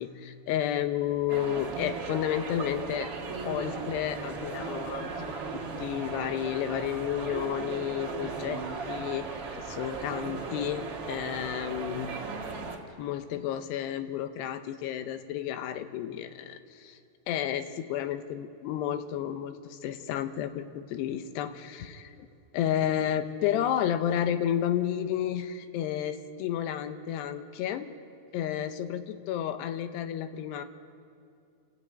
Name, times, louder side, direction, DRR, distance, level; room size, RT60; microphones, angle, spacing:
voice 1, 0.0-3.1 3.5-5.1 5.8-9.3 9.5-12.1 13.0-17.0 17.3-22.1 22.5-27.9 28.3-30.6, left 10 dB, 80° left, 9 dB, 2.9 m, -31 dB
sound 1, 1.3-12.8, right 4 dB, 45° right, 2.3 m, -37 dB
29.0 x 13.0 x 9.2 m, 2.4 s
omnidirectional pair, 4.9 m